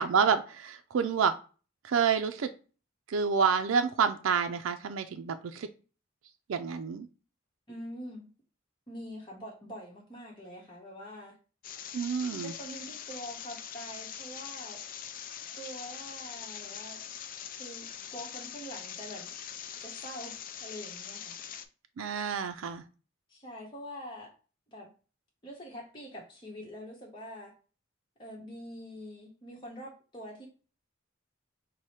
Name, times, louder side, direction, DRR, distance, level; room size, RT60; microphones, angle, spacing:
voice 1, 0.0-1.3 1.8-2.5 3.1-5.7 6.5-7.1 11.9-12.5 22.0-22.8, right 6 dB, 85° right, 7 dB, 0.4 m, -28 dB
voice 2, 7.7-8.2 8.9-11.4 12.4-14.8 15.5-17.0 17.6-17.9 18.1-19.4 19.8-21.3 23.3-24.3 24.7-24.9 25.4-27.5 28.2-30.5, equal, 25° left, -3 dB, 1.0 m, -44 dB
sound 1, 11.6-21.6, left 9 dB, 45° left, 0.4 m, -43 dB
4.7 x 2.1 x 4.2 m, 0.35 s
head